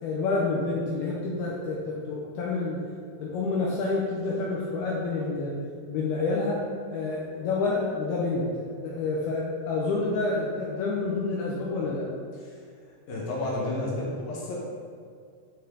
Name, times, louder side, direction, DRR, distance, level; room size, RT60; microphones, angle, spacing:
voice 1, 0.0-2.8 3.2-5.5 5.9-6.6 6.9-12.1, left 3 dB, 80° left, -4 dB, 2.2 m, -28 dB
voice 2, 13.1-14.6, left 2 dB, 60° left, -5 dB, 2.8 m, -31 dB
8.9 x 6.7 x 4.0 m, 2.2 s
omnidirectional pair, 5.6 m